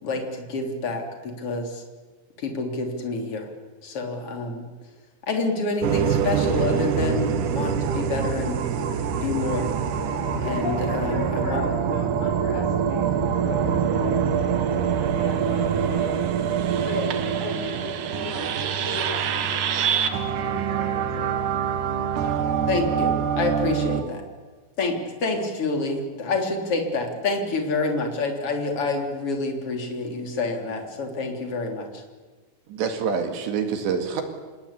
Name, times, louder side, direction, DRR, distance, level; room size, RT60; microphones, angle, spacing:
voice 1, 0.0-1.8 2.4-3.5 3.8-4.6 5.3-8.6 9.2-9.7 10.4-11.6 22.7-24.2 24.8-25.0 25.2-32.0, left 3 dB, 30° left, 3 dB, 3.6 m, -27 dB
sound 1, 5.8-24.0, right 7 dB, 90° right, 1.7 m, -25 dB
voice 2, 10.4-14.7 15.0-16.3 16.8-23.1, left 3 dB, 80° left, 3 dB, 7.9 m, -37 dB
voice 3, 32.7-34.2, right 6 dB, 65° right, 6 dB, 4.0 m, -26 dB
26.0 x 21.0 x 8.6 m, 1.4 s
omnidirectional pair, 5.9 m